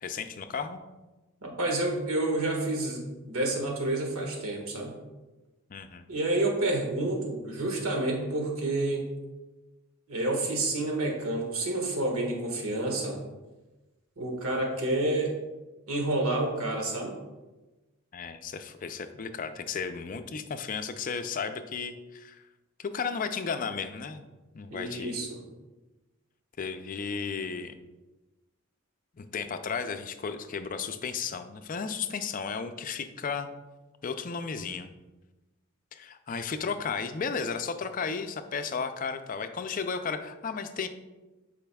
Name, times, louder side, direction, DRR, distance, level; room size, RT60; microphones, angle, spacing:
voice 1, 0.0-0.8 5.7-6.1 18.1-22.4 22.8-24.2 24.5-25.2 26.6-27.7 29.2-33.5 34.0-34.9 35.9-40.9, left 5 dB, 40° left, 9 dB, 0.4 m, -34 dB
voice 2, 1.4-4.9 6.1-9.1 10.1-13.2 14.2-15.3 15.9-17.1 24.7-25.4, right 2 dB, 80° right, 1 dB, 1.6 m, -29 dB
10.5 x 4.9 x 2.3 m, 1.1 s
head